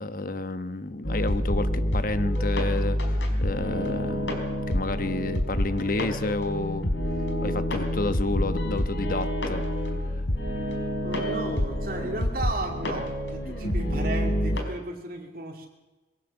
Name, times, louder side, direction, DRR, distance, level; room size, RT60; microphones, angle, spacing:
voice 1, 0.0-4.4 4.7-6.9 7.4-9.6, left 2 dB, 50° left, 11 dB, 1.1 m, -30 dB
sound 1, 1.0-14.6, equal, 85° left, 4.2 m, -27 dB
voice 2, 11.0-15.7, right 2 dB, 50° right, 0 dB, 2.4 m, -34 dB
22.5 x 17.0 x 7.1 m, 1.2 s
head